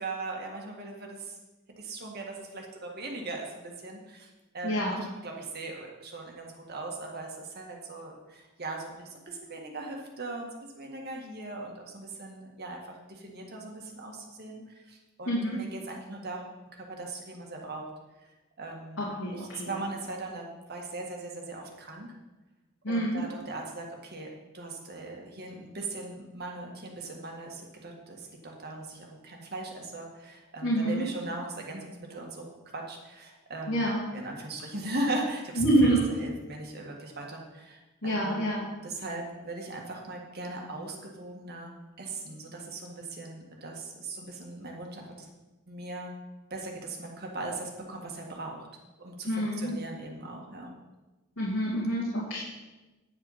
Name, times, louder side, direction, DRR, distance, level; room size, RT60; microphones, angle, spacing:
voice 1, 0.0-1.4 1.8-16.5 16.7-17.9 18.6-22.1 22.9-24.3 24.5-32.4 32.7-38.5 38.8-45.3 45.7-46.1 46.5-48.7 49.0-50.7, right 2 dB, 50° right, 0 dB, 1.7 m, -39 dB
voice 2, 4.6-5.0 15.3-15.6 19.0-19.7 22.8-23.2 30.6-31.1 33.7-34.0 35.6-36.0 38.0-38.7 49.3-49.7 51.4-52.4, right 1 dB, 75° left, -7 dB, 2.7 m, -27 dB
9.9 x 7.7 x 5.7 m, 1.1 s
head